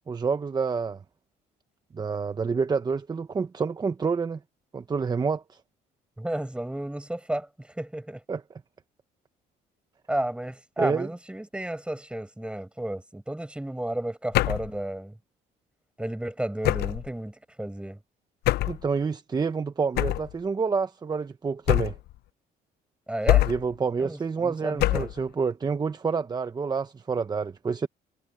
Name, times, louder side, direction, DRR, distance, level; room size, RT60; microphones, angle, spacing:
voice 1, 0.1-1.0 1.9-4.4 4.7-5.6 8.3-8.4 10.8-11.1 18.7-21.9 23.5-27.9, right 5 dB, 25° right, 0.9 m, -28 dB
voice 2, 6.2-8.2 10.1-15.1 16.0-18.0 23.1-23.5 24.0-25.1, right 1 dB, 5° right, 7.5 m, -32 dB
sound 1, 14.3-14.7 16.6-17.1 18.4-18.8 20.0-20.3 21.7-22.1 23.3-23.7 24.8-25.2, left 17 dB, 75° left, 0.6 m, -24 dB
cardioid pair, 110°, 17 cm